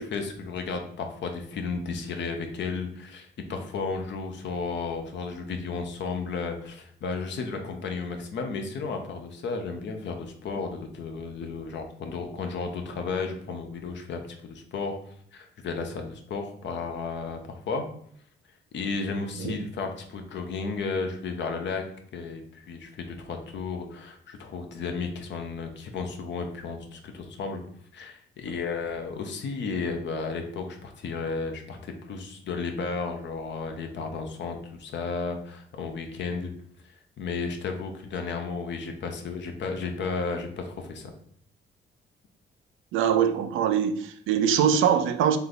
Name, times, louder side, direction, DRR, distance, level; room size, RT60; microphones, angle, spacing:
voice 1, 0.0-15.0 15.3-17.8 18.7-21.8 22.1-27.6 27.9-36.5 37.2-41.1, left 4 dB, 65° left, 0.9 m, -33 dB
voice 2, 42.9-45.4, right 8 dB, 85° right, 0.5 m, -23 dB
3.4 x 3.3 x 4.0 m
cardioid pair, 90°, 20 cm